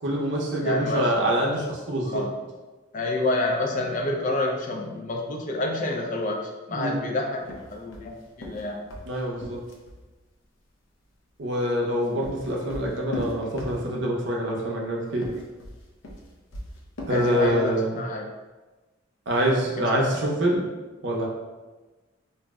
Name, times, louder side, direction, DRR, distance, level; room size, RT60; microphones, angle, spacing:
voice 1, 0.0-2.2 6.7-7.0 9.1-9.6 11.4-15.3 17.1-18.0 19.3-20.7 21.0-21.3, equal, 60° right, -2 dB, 0.6 m, -25 dB
voice 2, 0.6-1.3 2.0-2.3 2.9-6.4 6.7-8.8 17.1-18.3 19.8-20.0, left 2 dB, 40° left, 1 dB, 0.3 m, -28 dB
sound 1, 7.4-10.0 11.7-14.2 15.1-17.7, left 1 dB, 90° left, 0.5 m, -38 dB
2.5 x 2.0 x 3.4 m, 1.2 s
head